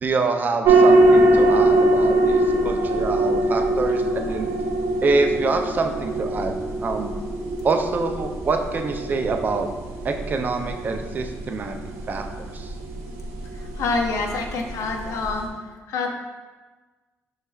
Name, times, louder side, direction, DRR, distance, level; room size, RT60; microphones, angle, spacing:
voice 1, 0.0-4.5 5.0-7.1 7.6-9.7 10.0-11.8 12.1-12.7, right 3 dB, 35° right, 5 dB, 0.3 m, -26 dB
sound 1, 0.6-15.5, right 2 dB, 75° right, 0.6 m, -22 dB
voice 2, 13.5-15.5 15.9-16.1, left 4 dB, 75° left, 2 dB, 0.5 m, -26 dB
5.5 x 3.2 x 2.3 m, 1.3 s
cardioid pair, 130°, 5 cm